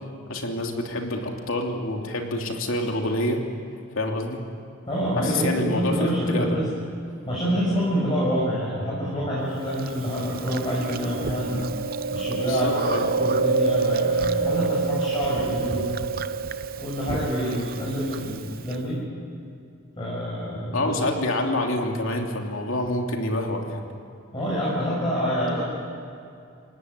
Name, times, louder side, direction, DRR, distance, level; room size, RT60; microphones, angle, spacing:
voice 1, 0.3-3.4 3.9-4.4 5.2-6.6 12.4-13.0 20.7-23.8, left 1 dB, 70° left, 2 dB, 2.9 m, -27 dB
voice 2, 4.9-6.7 7.3-11.7 12.1-15.9 16.8-19.0 20.0-21.2 24.3-25.6, equal, 25° left, -7 dB, 6.5 m, -27 dB
Chewing mastication, 9.8-18.8, right 4 dB, 45° right, 0.6 m, -27 dB
29.0 x 17.5 x 9.5 m, 2.5 s
head